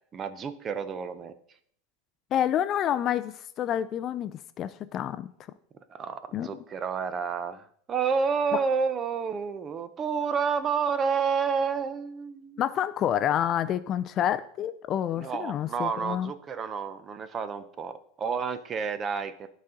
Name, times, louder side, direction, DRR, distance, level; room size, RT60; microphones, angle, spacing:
voice 1, 0.1-1.3 5.9-12.6 15.2-19.6, right 6 dB, 25° right, 0.5 m, -30 dB
voice 2, 2.3-5.3 6.3-6.6 8.5-8.6 12.6-16.3, left 10 dB, 30° left, 0.3 m, -28 dB
12.0 x 4.1 x 3.8 m
supercardioid pair, 145°, 0 cm